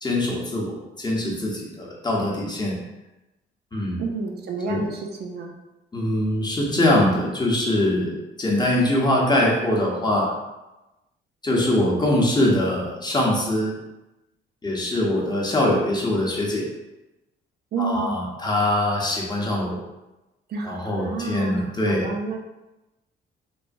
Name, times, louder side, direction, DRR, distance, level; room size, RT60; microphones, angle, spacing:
voice 1, 0.0-2.8 3.7-4.0 4.7-4.9 5.9-10.3 11.4-13.8 14.6-16.7 17.8-19.8 20.6-22.1, left 1 dB, 20° left, -3 dB, 0.7 m, -23 dB
voice 2, 4.0-5.5 17.7-18.2 20.5-22.4, right 4 dB, 55° right, 1 dB, 0.4 m, -30 dB
3.1 x 2.1 x 2.5 m, 1.0 s
cardioid pair, 90°, 20 cm